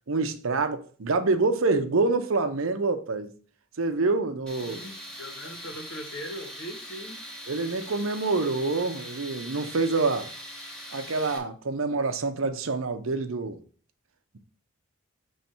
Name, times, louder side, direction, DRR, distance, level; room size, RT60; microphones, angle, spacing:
voice 1, 0.1-3.3 3.8-4.8 7.5-10.3 10.9-13.6, right 3 dB, 70° right, 0.7 m, -26 dB
Tools, 4.5-11.4, equal, 5° left, 1.0 m, -42 dB
voice 2, 4.6-7.2, equal, 65° left, 1.6 m, -40 dB
6.7 x 3.2 x 4.4 m
head